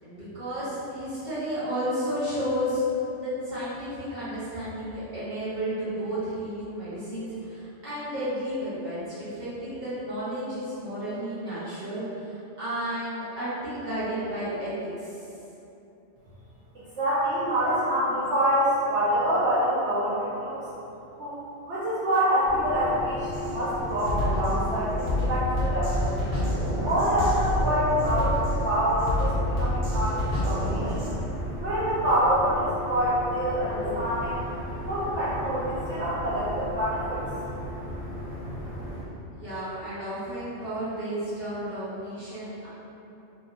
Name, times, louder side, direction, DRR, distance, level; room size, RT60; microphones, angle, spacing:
voice 1, 0.0-15.3 39.3-42.7, equal, 40° right, -13 dB, 1.3 m, -32 dB
voice 2, 17.0-20.7 21.2-21.3 21.6-26.2 26.8-31.0 31.6-34.4 34.9-37.2, equal, 75° right, -10 dB, 0.9 m, -26 dB
sound 1, 22.4-39.0, equal, 20° left, 0.6 m, -36 dB
Drum kit, 23.3-23.5 24.0-31.2, left 1 dB, 90° right, 1.2 m, -28 dB
2.6 x 2.2 x 3.6 m, 2.9 s
omnidirectional pair, 1.2 m